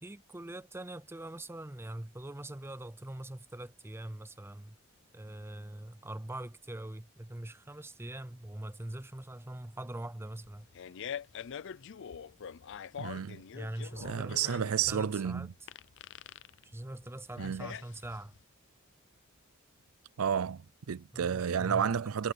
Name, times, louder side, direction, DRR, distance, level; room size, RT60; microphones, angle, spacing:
voice 1, 0.0-4.8 5.1-10.7 13.5-15.7 16.6-18.4 21.1-21.9, right 1 dB, 10° right, 0.6 m, -43 dB
Fart, 10.4-18.4, left 8 dB, 60° left, 0.5 m, -44 dB
voice 2, 13.0-13.4 14.0-15.5 17.4-17.7 20.2-22.3, right 8 dB, 80° right, 0.5 m, -31 dB
head